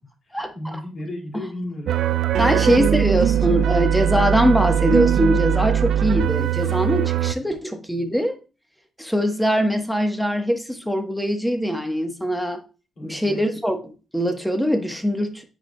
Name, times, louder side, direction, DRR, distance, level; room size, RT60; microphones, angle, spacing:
voice 1, 0.2-2.0 2.4-3.8 7.3-7.6 13.0-13.4, left 1 dB, 55° left, 0 dB, 2.3 m, -36 dB
sound 1, 1.9-7.3, right 10 dB, 80° right, 0.3 m, -20 dB
voice 2, 2.4-8.3 9.0-12.6 13.0-15.4, equal, ahead, 6 dB, 1.1 m, -22 dB
8.9 x 4.7 x 2.2 m, 0.34 s
cardioid pair, 90°, 0 cm